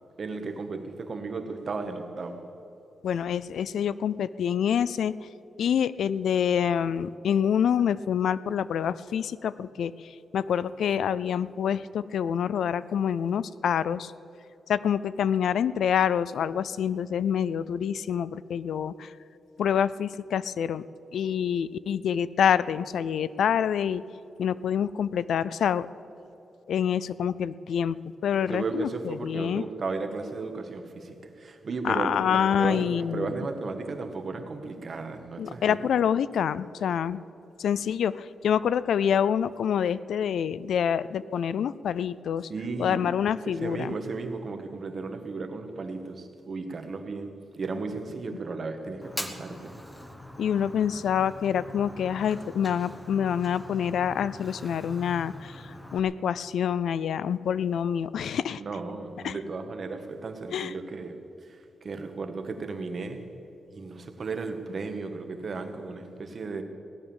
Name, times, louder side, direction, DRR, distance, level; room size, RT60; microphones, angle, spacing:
voice 1, 0.2-2.6 28.4-35.8 42.5-43.0 43.6-49.8 58.6-63.4 63.7-66.6, right 3 dB, 40° right, 7 dB, 1.2 m, -35 dB
voice 2, 3.0-5.1 5.6-14.1 14.7-19.1 19.6-20.8 21.1-24.0 24.4-25.9 26.7-29.6 31.8-33.3 35.4-37.2 37.6-42.5 42.8-43.9 50.4-58.6 59.2-59.4 60.5-60.7, left 8 dB, 80° left, 17 dB, 0.3 m, -27 dB
Fire, 49.0-56.0, left 1 dB, 5° left, 1.0 m, -42 dB
17.5 x 10.5 x 7.1 m, 3.0 s
wide cardioid pair, 170°, 0 cm